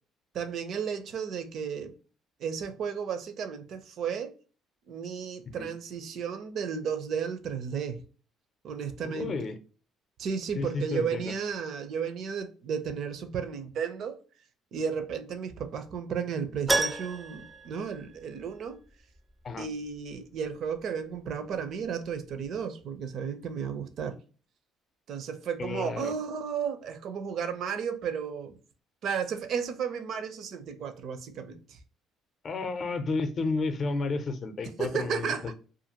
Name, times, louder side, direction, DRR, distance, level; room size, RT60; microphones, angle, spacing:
voice 1, 0.3-1.9 2.4-4.3 4.9-8.0 8.6-9.3 10.2-14.2 14.7-18.8 19.6-24.1 25.1-28.5 29.0-31.8 34.8-35.5, right 7 dB, 60° right, 0.5 m, -33 dB
voice 2, 9.0-9.6 10.6-11.3 19.4-19.7 25.6-26.1 32.4-35.5, left 3 dB, 40° left, 0.5 m, -32 dB
Keyboard (musical), 16.7-18.7 19.0-19.1 21.8-21.9 22.1-22.2, right 2 dB, 10° right, 0.4 m, -31 dB
2.5 x 2.4 x 2.8 m
cardioid pair, 115°, 0 cm